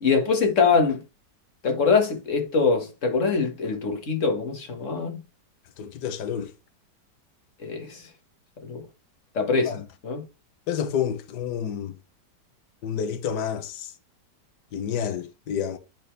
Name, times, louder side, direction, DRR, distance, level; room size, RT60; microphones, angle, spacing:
voice 1, 0.0-1.0 1.6-5.2 7.6-8.0 8.7-8.8 9.4-9.8 10.0-10.2, left 5 dB, 45° left, 1.9 m, -23 dB
voice 2, 5.8-6.5 9.6-9.8 10.7-12.0 12.8-13.9 14.7-15.8, left 8 dB, 70° left, 1.5 m, -29 dB
10.0 x 4.1 x 3.3 m
omnidirectional pair, 1.9 m